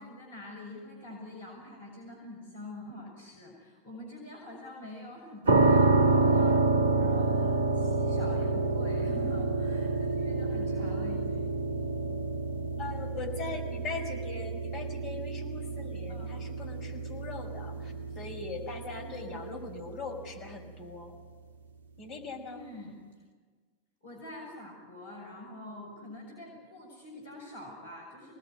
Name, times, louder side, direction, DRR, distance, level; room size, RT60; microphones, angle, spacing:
voice 1, 0.0-6.5 7.0-11.5 16.1-16.4 17.8-17.9 19.0-19.4 22.5-23.0 24.0-28.3, left 1 dB, 65° left, -1 dB, 6.7 m, -45 dB
sound 1, 5.5-20.3, right 3 dB, 65° right, 1.0 m, -28 dB
voice 2, 12.8-21.1 22.0-22.6, left 4 dB, 40° left, 2 dB, 5.7 m, -40 dB
25.0 x 19.5 x 9.7 m, 1.5 s
figure-of-eight pair, 90°, 0 cm